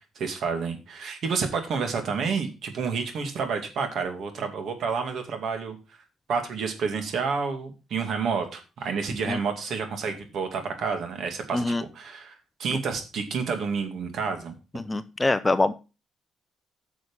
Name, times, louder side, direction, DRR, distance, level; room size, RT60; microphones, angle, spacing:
voice 1, 0.2-5.8 6.3-12.3 12.6-14.5, right 5 dB, 55° right, 6 dB, 2.3 m, -29 dB
voice 2, 11.5-11.8 14.7-15.7, left 2 dB, 15° left, 13 dB, 0.5 m, -24 dB
9.5 x 6.3 x 5.5 m, 0.30 s
cardioid pair, 170°, 0 cm